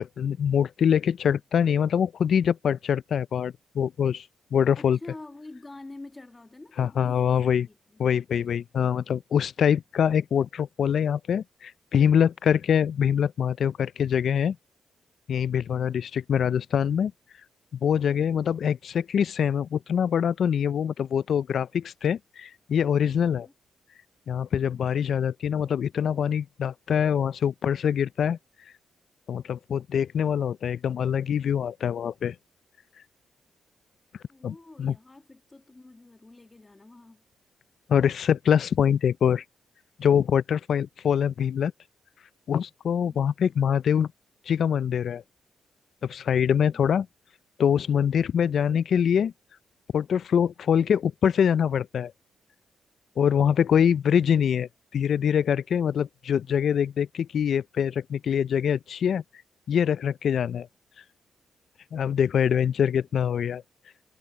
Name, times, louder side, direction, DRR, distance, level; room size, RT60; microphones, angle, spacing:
voice 1, 0.0-4.2 4.5-5.0 6.8-7.7 8.0-14.6 15.3-17.1 17.8-23.5 24.3-28.4 29.3-32.3 34.4-34.9 37.9-39.4 40.0-41.7 42.5-44.1 44.5-45.2 46.0-47.1 47.6-49.3 49.9-52.1 53.2-59.2 59.7-60.7 61.9-63.6, left 8 dB, 65° left, 0.4 m, -24 dB
voice 2, 4.8-8.0 15.7-16.0 23.2-23.5 34.3-37.2 43.0-43.3 53.7-54.0 62.6-62.7, left 2 dB, 20° left, 1.6 m, -47 dB
cardioid pair, 110°, 0 cm